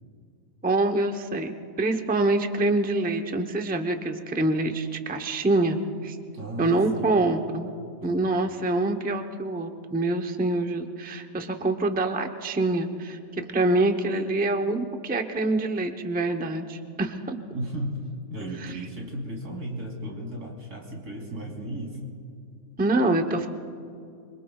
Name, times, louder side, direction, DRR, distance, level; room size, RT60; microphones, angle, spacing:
voice 1, 0.6-6.2 6.6-7.7 8.0-17.4 18.6-18.7 22.8-23.5, right 2 dB, 10° right, 5 dB, 0.5 m, -25 dB
voice 2, 6.3-7.3 8.0-8.4 17.5-22.1, right 1 dB, 90° right, -1 dB, 3.4 m, -35 dB
26.0 x 23.5 x 2.3 m, 2.5 s
omnidirectional pair, 1.6 m